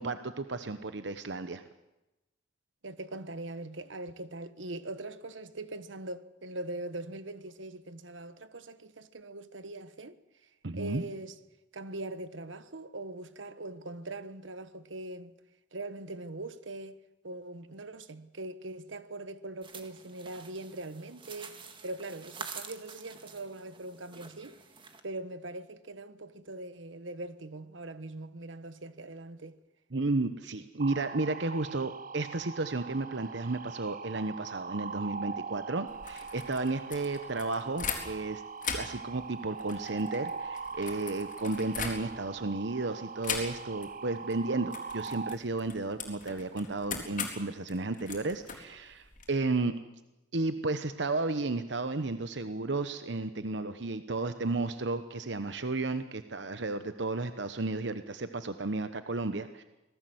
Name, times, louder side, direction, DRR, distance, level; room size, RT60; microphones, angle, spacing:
voice 1, 0.0-1.6 10.6-11.0 29.9-38.4 38.7-49.7 50.3-59.6, right 3 dB, 70° right, 1.0 m, -33 dB
voice 2, 2.8-10.2 10.7-11.3 11.7-15.3 15.7-17.0 17.2-21.6 21.8-24.6 25.0-29.5, right 2 dB, 85° right, 1.3 m, -41 dB
sound 1, 19.6-25.0, right 5 dB, 25° right, 1.8 m, -47 dB
sound 2, 30.8-45.3, right 5 dB, 45° right, 0.7 m, -42 dB
sound 3, 35.9-38.3 38.6-42.4 43.2-43.9 44.2-44.4 44.7-49.3, left 6 dB, 45° left, 4.0 m, -40 dB
25.5 x 18.5 x 7.9 m
head